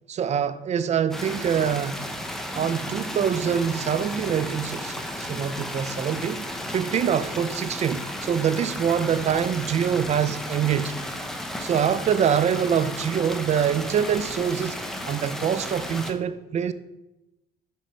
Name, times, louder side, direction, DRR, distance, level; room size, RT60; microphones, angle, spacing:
voice 1, 0.1-2.0 2.5-10.9 11.6-14.8 15.1-16.7, right 8 dB, 40° right, 0.4 m, -25 dB
sound 1, 1.1-16.1, left 1 dB, ahead, 0.8 m, -34 dB
7.3 x 5.2 x 4.3 m
cardioid pair, 110°, 17 cm